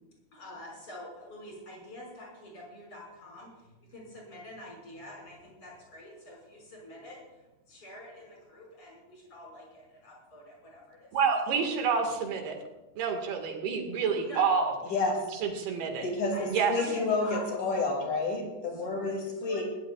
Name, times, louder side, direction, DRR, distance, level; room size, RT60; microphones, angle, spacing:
voice 1, 0.3-11.2 11.5-11.6 12.7-12.8 14.2-14.4 16.3-17.4 18.7-19.6, left 1 dB, 35° left, -3 dB, 6.6 m, -47 dB
voice 2, 11.1-12.6 13.0-14.7 15.4-16.1 16.5-16.7, right 5 dB, 85° right, 3 dB, 3.9 m, -28 dB
voice 3, 14.8-15.3 16.0-19.6, left 3 dB, 55° left, 2 dB, 3.9 m, -30 dB
21.0 x 16.0 x 2.4 m, 1.1 s
omnidirectional pair, 4.4 m